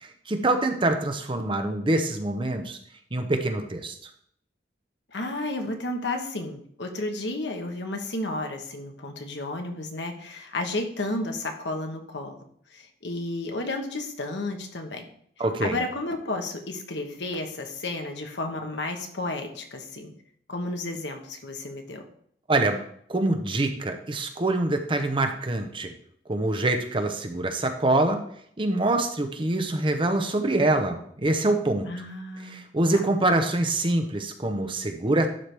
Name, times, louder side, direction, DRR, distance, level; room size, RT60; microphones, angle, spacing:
voice 1, 0.0-2.8 3.1-4.0 15.4-15.8 22.5-22.8 23.1-25.9 26.3-28.2 28.6-31.9 32.5-35.3, right 2 dB, 30° right, 6 dB, 0.8 m, -25 dB
voice 2, 5.1-12.4 12.7-15.1 15.6-20.1 20.5-22.0 31.9-32.6 32.9-33.0, left 2 dB, 80° left, 4 dB, 1.3 m, -32 dB
11.5 x 4.7 x 3.4 m, 0.63 s
head